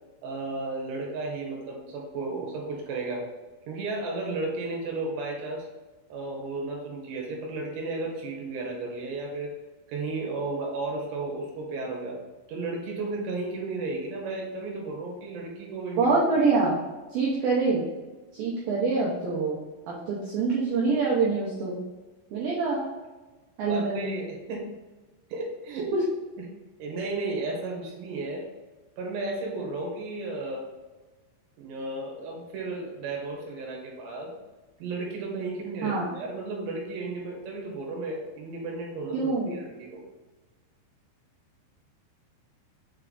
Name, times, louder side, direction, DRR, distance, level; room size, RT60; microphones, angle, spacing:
voice 1, 0.2-3.3 3.7-5.7 6.1-9.5 9.9-12.2 12.5-16.2 23.7-24.7 25.3-25.9 26.8-28.5 29.0-30.7 31.6-34.3 34.8-40.0, right 3 dB, 75° right, -2 dB, 3.2 m, -33 dB
voice 2, 16.0-16.8 17.1-17.8 18.3-19.6 19.9-21.8 22.3-22.8 23.6-24.2 25.9-26.0 35.8-36.1 39.1-39.6, right 4 dB, 90° right, -5 dB, 2.0 m, -25 dB
7.4 x 3.4 x 3.8 m, 1.2 s
omnidirectional pair, 5.4 m